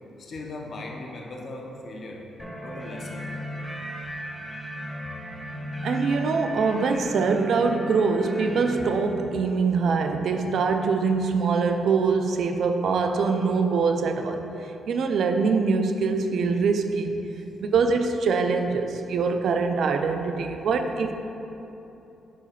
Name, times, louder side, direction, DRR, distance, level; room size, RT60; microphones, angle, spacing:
voice 1, 0.2-2.2 2.6-3.2 17.4-17.5, left 2 dB, 40° left, 0 dB, 0.7 m, -38 dB
sound 1, 2.4-9.1, equal, ahead, 0.5 m, -35 dB
voice 2, 5.8-14.5 14.9-17.2 17.6-21.1, right 4 dB, 55° right, 6 dB, 0.4 m, -23 dB
5.0 x 3.9 x 5.7 m, 3.0 s
wide cardioid pair, 170°, 0 cm